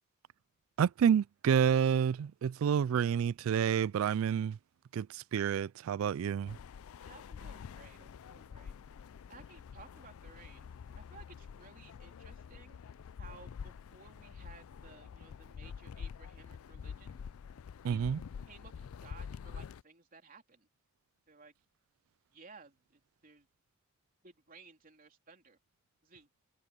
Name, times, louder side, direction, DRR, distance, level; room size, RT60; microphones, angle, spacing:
voice 1, 0.8-4.6 4.9-6.6 17.8-18.2, right 8 dB, 70° right, 0.3 m, -29 dB
sound 1, 6.5-19.8, left 6 dB, 90° left, 0.4 m, -47 dB
voice 2, 7.0-8.7 9.3-10.7 10.9-12.8 13.2-17.2 17.9-18.1 18.5-18.7 19.0-20.7 21.3-21.5 22.3-23.5 24.2-25.6 26.0-26.3, right 4 dB, 45° right, 3.3 m, -57 dB
head